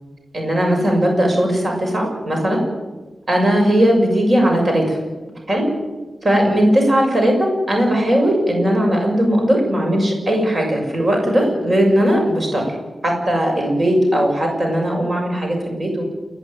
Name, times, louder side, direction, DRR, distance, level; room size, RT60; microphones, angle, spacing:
voice 1, 0.3-2.6 3.3-5.0 5.5-5.6 6.2-12.7 13.0-16.0, equal, 35° right, 1 dB, 6.7 m, -18 dB
29.0 x 11.0 x 9.2 m, 1.2 s
wide cardioid pair, 165°, 0 cm